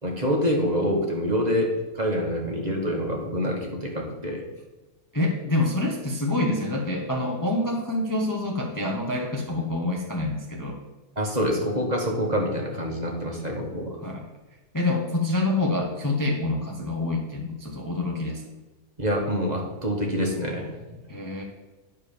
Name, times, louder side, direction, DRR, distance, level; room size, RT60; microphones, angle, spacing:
voice 1, 0.0-4.4 11.2-14.0 19.0-20.7, equal, 30° right, 0 dB, 1.4 m, -26 dB
voice 2, 5.1-10.8 14.0-14.2 14.7-18.5 21.1-21.4, left 2 dB, 15° left, 0 dB, 0.9 m, -26 dB
10.0 x 4.6 x 6.9 m, 1.2 s
omnidirectional pair, 1.5 m